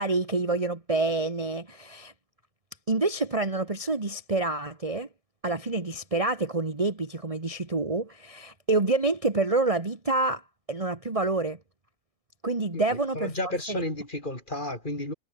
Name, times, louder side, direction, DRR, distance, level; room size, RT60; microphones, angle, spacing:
voice 1, 0.0-2.1 2.9-5.1 5.4-10.4 10.7-11.6 12.4-13.3 13.7-13.8, right 3 dB, 20° right, 1.7 m, -27 dB
voice 2, 13.2-15.1, left 1 dB, 25° left, 5.3 m, -32 dB
omnidirectional pair, 2.0 m